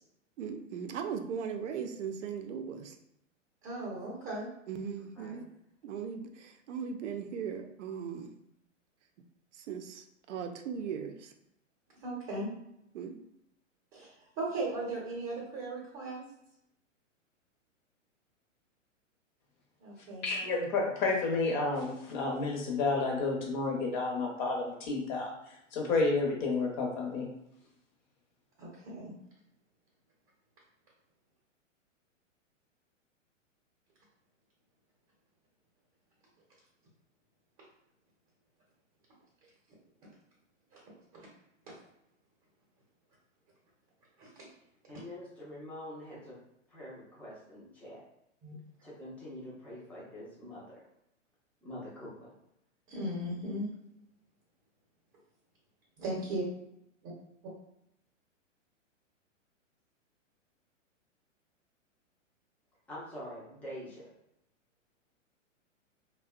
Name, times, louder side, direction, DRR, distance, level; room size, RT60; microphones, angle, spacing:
voice 1, 0.4-3.0 4.7-5.5 5.8-8.3 9.5-11.3 12.9-13.2, right 7 dB, 65° right, 6 dB, 0.5 m, -38 dB
voice 2, 3.6-4.5 12.0-12.5 13.9-16.2 19.8-20.3 28.6-29.1 40.7-40.8 41.1-41.3 44.2-44.5 48.4-48.5 52.9-53.7 56.0-56.4 57.0-57.1, right 2 dB, 30° right, -4 dB, 0.7 m, -37 dB
voice 3, 20.2-25.3 25.7-27.3, left 3 dB, 35° left, 0 dB, 0.7 m, -30 dB
voice 4, 44.9-46.4 46.7-48.0 48.8-50.8 51.6-52.3 62.9-64.1, left 1 dB, 5° left, -7 dB, 0.5 m, -45 dB
2.5 x 2.1 x 2.3 m, 0.80 s
hypercardioid pair, 120°, 39 cm